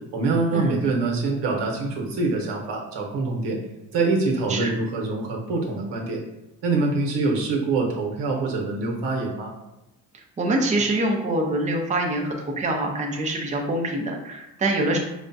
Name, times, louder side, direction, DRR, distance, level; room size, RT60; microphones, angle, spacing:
voice 1, 0.1-3.6 3.9-6.2 6.6-9.5, right 3 dB, 80° right, 0 dB, 0.9 m, -25 dB
voice 2, 10.4-15.0, right 1 dB, 20° right, 1 dB, 0.5 m, -25 dB
4.9 x 2.2 x 2.6 m, 0.93 s
cardioid pair, 95°, 41 cm